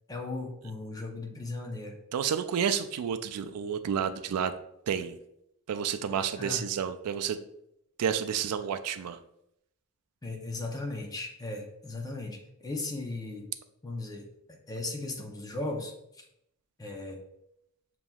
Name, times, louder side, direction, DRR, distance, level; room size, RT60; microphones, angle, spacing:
voice 1, 0.1-2.0 6.4-6.6 10.2-13.5 13.8-14.2 14.5-16.2 16.8-17.2, left 2 dB, 15° left, 1 dB, 0.6 m, -37 dB
voice 2, 2.1-4.5 4.9-5.2 5.7-7.4 8.0-9.2, right 8 dB, 85° right, 11 dB, 0.4 m, -30 dB
7.1 x 2.9 x 2.3 m, 0.79 s
head